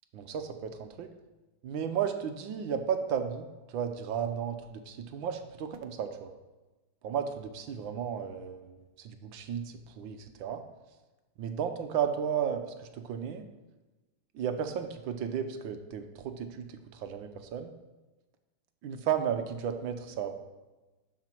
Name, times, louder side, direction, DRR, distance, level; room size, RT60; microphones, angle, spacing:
voice 1, 0.1-1.1 1.6-6.3 7.0-10.6 11.4-12.6 12.9-13.4 14.3-16.7 16.9-17.7 18.8-20.3, right 8 dB, 70° right, 7 dB, 1.4 m, -34 dB
12.0 x 5.1 x 4.4 m, 1.2 s
omnidirectional pair, 2.4 m